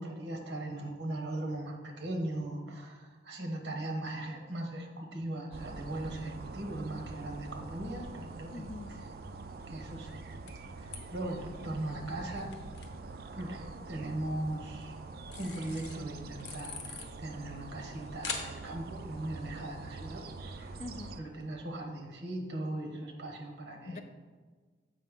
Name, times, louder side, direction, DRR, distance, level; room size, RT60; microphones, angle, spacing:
voice 1, 0.0-8.6 9.7-10.1 10.8-12.5 13.3-15.0 15.3-20.8 21.2-24.0, right 1 dB, 75° right, 2 dB, 1.1 m, -39 dB
sound 1, 5.5-21.2, right 3 dB, 55° right, 0.3 m, -45 dB
Old camera taking a photo, 7.4-21.5, left 4 dB, 70° left, 0.9 m, -49 dB
voice 2, 8.5-8.9 20.8-21.2 23.2-23.3 23.8-24.0, left 3 dB, 35° left, 8 dB, 0.4 m, -43 dB
7.5 x 5.1 x 3.6 m, 1.5 s
head